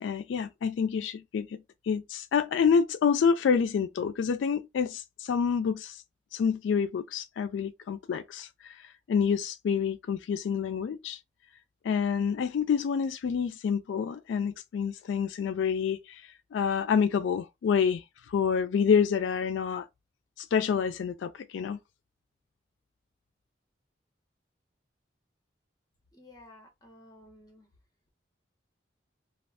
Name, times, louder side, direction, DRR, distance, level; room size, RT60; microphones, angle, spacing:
voice 1, 0.0-1.5 1.9-6.0 6.3-11.2 11.8-16.2 16.5-19.9 20.4-21.8, left 6 dB, 85° left, 0.3 m, -28 dB
voice 2, 26.1-27.7, left 1 dB, 20° left, 1.0 m, -54 dB
2.5 x 2.4 x 3.3 m
head